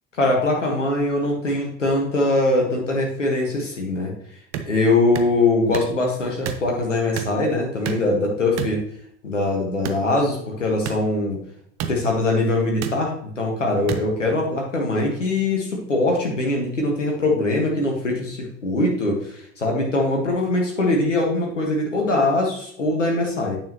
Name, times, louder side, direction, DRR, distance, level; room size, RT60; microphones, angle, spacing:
voice 1, 0.1-4.1 4.7-8.8 9.2-11.4 11.9-23.6, left 2 dB, 90° left, -1 dB, 1.6 m, -22 dB
sound 1, 4.5-4.7 5.1-5.3 5.7-5.9 6.4-6.6 7.2-7.3 7.8-8.1 8.6-8.8 9.8-10.0 10.8-11.0 11.8-11.9 12.8-12.9 13.9-14.0, right 9 dB, 45° right, 1.1 m, -28 dB
9.1 x 7.3 x 3.0 m, 0.68 s
figure-of-eight pair, 65°, 36 cm